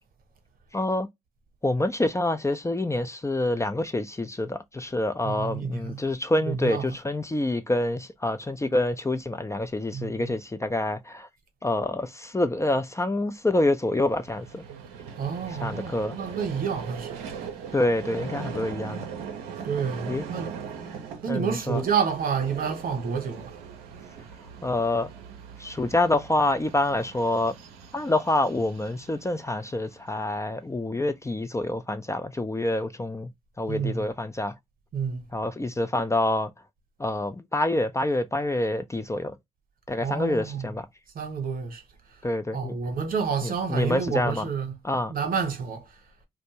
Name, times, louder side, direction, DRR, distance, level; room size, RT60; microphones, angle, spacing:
voice 1, 0.7-1.1 1.6-11.3 11.6-14.6 15.5-16.2 17.7-19.1 20.1-20.2 21.3-21.8 24.6-25.1 25.6-27.5 27.9-33.3 33.6-34.5 35.3-36.5 37.0-39.3 39.9-40.9 42.2-42.7 43.4-44.5 44.8-45.1, left 2 dB, 15° left, 0.5 m, -27 dB
voice 2, 5.2-6.0 6.5-6.8 9.9-10.1 15.2-17.2 19.6-20.6 21.2-23.5 33.7-34.0 34.9-35.2 40.0-40.7 41.1-41.8 42.5-44.7 45.1-45.8, right 6 dB, 60° right, 0.9 m, -29 dB
Vehicle, 13.9-30.2, right 6 dB, 90° right, 0.5 m, -40 dB
2.5 x 2.1 x 2.8 m
hypercardioid pair, 40°, 16 cm